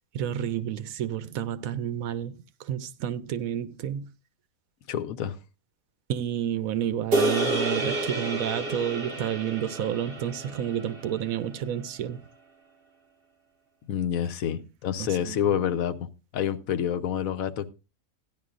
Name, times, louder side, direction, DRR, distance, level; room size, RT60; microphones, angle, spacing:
voice 1, 0.1-4.0 6.1-12.2 15.0-15.4, right 10 dB, 85° right, 1.1 m, -30 dB
voice 2, 4.9-5.3 13.9-15.9 16.3-17.7, left 9 dB, 90° left, 1.2 m, -28 dB
sound 1, 7.1-11.6, right 1 dB, 45° right, 1.4 m, -30 dB
15.5 x 10.5 x 2.5 m
omnidirectional pair, 1.4 m